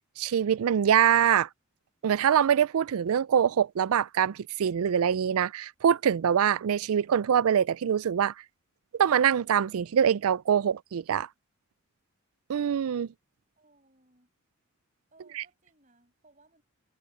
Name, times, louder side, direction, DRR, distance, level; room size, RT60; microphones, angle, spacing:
voice 1, 0.2-1.5 2.0-8.3 9.0-11.3 12.5-13.1 15.4-15.5, right 8 dB, 75° right, 0.4 m, -24 dB
voice 2, 13.6-14.3 15.1-16.6, right 2 dB, 35° right, 7.4 m, -63 dB
head